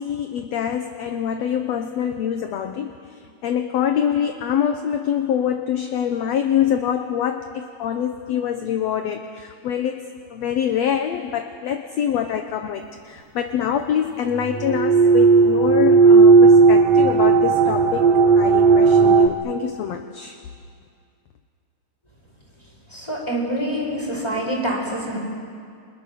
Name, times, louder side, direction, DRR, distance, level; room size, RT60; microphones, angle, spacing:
voice 1, 0.0-10.0 10.3-18.1 18.4-20.4, left 9 dB, 65° left, 6 dB, 1.9 m, -25 dB
sound 1, 14.5-19.3, right 4 dB, 60° right, 2.1 m, -14 dB
voice 2, 22.9-25.2, right 1 dB, 5° left, -1 dB, 5.2 m, -26 dB
30.0 x 27.0 x 6.6 m, 2.3 s
omnidirectional pair, 3.8 m